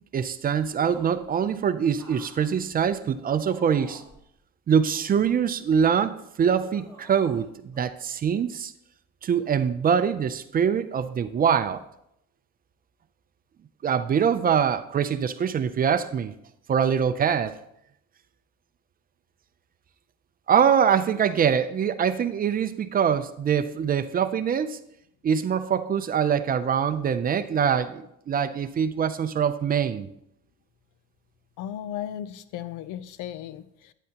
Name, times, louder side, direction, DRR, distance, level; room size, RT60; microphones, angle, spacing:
voice 1, 0.1-4.0 4.7-8.7 9.2-11.8 13.8-16.3 16.7-17.5 20.5-24.8 25.2-30.1, right 7 dB, 30° right, 11 dB, 0.4 m, -24 dB
sound 1, 0.8-1.3 1.9-4.2 4.9-6.0 6.6-7.5 7.7-7.9, right 1 dB, 10° left, 4.3 m, -50 dB
voice 2, 31.6-33.9, left 10 dB, 80° left, 14 dB, 0.7 m, -36 dB
12.0 x 9.1 x 2.9 m, 0.77 s
cardioid pair, 130°, 31 cm